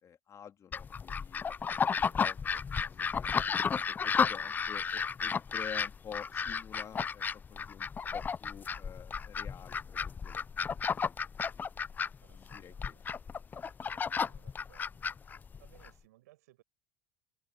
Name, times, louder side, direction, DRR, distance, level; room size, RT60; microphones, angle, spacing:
voice 1, 0.0-2.4 2.9-3.4 3.9-7.2 7.5-11.1 11.4-11.6 12.3-13.0, left 8 dB, 35° left, 2.9 m, -50 dB
sound 1, 0.7-15.9, left 6 dB, 20° left, 0.3 m, -33 dB
voice 2, 2.0-2.3 2.8-3.5 12.2-13.1 13.8-16.6, right 17 dB, 90° right, 7.6 m, -65 dB
supercardioid pair, 100°, 9 cm